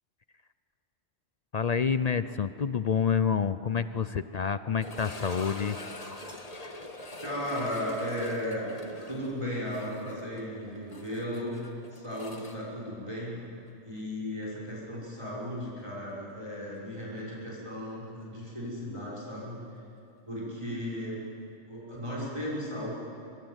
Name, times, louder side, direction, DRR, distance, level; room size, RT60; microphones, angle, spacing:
voice 1, 1.5-5.8, left 6 dB, 45° left, 12 dB, 0.5 m, -28 dB
sound 1, 4.8-13.7 14.0-14.1 14.7-14.8 17.4-17.5, left 1 dB, 30° left, 1.7 m, -44 dB
voice 2, 7.2-8.7 9.1-11.6 11.9-13.4 13.8-19.6 20.3-21.2 21.7-22.9, equal, 25° right, -6 dB, 5.8 m, -35 dB
24.5 x 21.0 x 8.1 m, 3.0 s
omnidirectional pair, 1.2 m